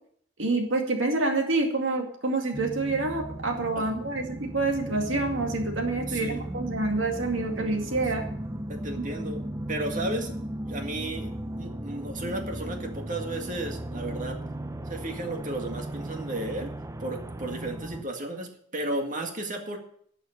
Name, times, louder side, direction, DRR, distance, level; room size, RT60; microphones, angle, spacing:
voice 1, 0.4-8.3, right 2 dB, 75° right, 3 dB, 2.3 m, -27 dB
sound 1, 2.5-18.0, right 1 dB, 15° right, 0.6 m, -36 dB
voice 2, 6.1-6.4 8.7-10.4 10.6-11.3 11.6-14.4 14.9-16.7 17.0-19.8, right 1 dB, 45° right, 3 dB, 2.0 m, -34 dB
11.5 x 6.3 x 8.8 m, 0.64 s
head